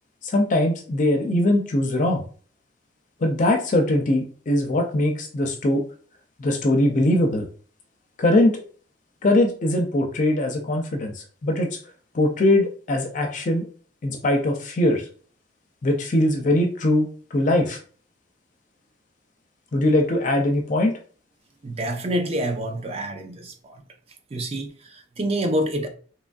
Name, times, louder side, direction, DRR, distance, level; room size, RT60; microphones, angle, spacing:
voice 1, 0.2-2.2 3.2-5.8 6.4-7.5 8.2-8.6 9.2-11.7 12.1-13.7 14.0-15.0 15.8-17.8 19.7-21.0, left 1 dB, 40° left, 0.4 m, -21 dB
voice 2, 21.6-23.5 24.3-25.9, right 1 dB, 35° right, 0.5 m, -27 dB
2.9 x 2.5 x 2.3 m
head